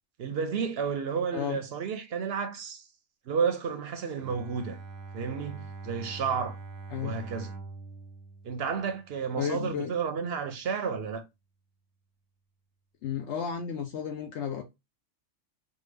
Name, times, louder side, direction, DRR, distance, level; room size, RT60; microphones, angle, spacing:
voice 1, 0.2-2.8 3.3-4.8 5.1-6.6 7.0-7.5 8.4-11.2, right 6 dB, 60° right, 0.7 m, -31 dB
Bowed string instrument, 4.2-9.4, right 3 dB, 90° right, 1.0 m, -43 dB
voice 2, 9.4-9.9 13.0-14.6, left 8 dB, 70° left, 0.8 m, -33 dB
3.7 x 2.2 x 3.2 m
omnidirectional pair, 1.3 m